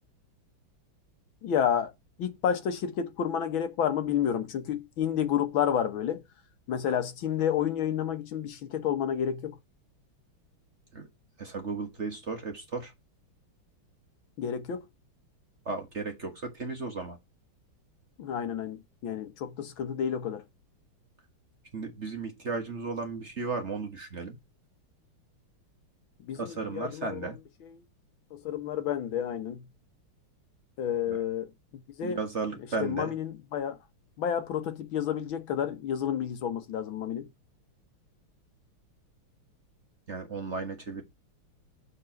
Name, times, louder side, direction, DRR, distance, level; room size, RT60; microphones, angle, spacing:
voice 1, 1.4-1.9 2.2-6.2 6.7-9.5 14.4-14.8 18.2-20.4 26.3-27.3 28.3-29.6 30.8-31.5 32.0-32.2 32.8-33.8 34.2-37.3, left 9 dB, 70° left, 1.8 m, -30 dB
voice 2, 11.4-12.9 15.6-17.2 21.7-24.4 26.3-27.4 31.1-31.2 32.0-33.1 40.1-41.0, right 4 dB, 35° right, 1.4 m, -35 dB
6.9 x 4.6 x 5.7 m
omnidirectional pair, 2.3 m